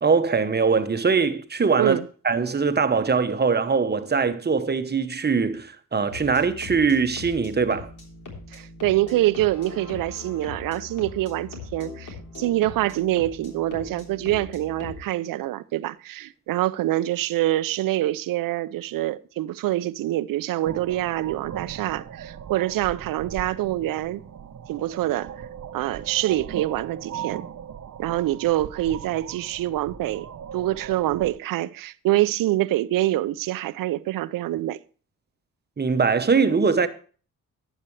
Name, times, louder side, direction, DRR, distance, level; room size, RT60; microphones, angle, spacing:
voice 1, 0.0-2.0 2.2-7.9 35.8-36.9, right 5 dB, 30° right, 1.0 m, -22 dB
sound 1, 6.1-15.0, left 4 dB, 65° left, 3.5 m, -40 dB
voice 2, 8.5-24.2 24.7-25.3 25.7-27.4 28.0-30.3 30.5-34.8, right 15 dB, 80° right, 0.6 m, -25 dB
sound 2, 20.6-31.3, right 8 dB, 50° right, 0.9 m, -39 dB
12.0 x 9.0 x 3.2 m
cardioid pair, 70°, 33 cm